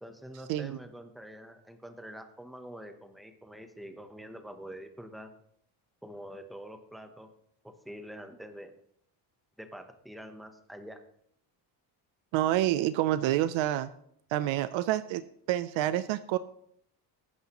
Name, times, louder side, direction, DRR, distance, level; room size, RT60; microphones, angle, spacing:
voice 1, 0.0-5.3 6.0-7.3 7.6-8.7 9.6-11.0, equal, ahead, 7 dB, 0.8 m, -46 dB
voice 2, 12.3-13.9 14.3-15.2 15.5-16.4, right 13 dB, 90° right, 14 dB, 0.6 m, -28 dB
19.0 x 9.6 x 2.9 m, 0.68 s
cardioid pair, 165°, 45 cm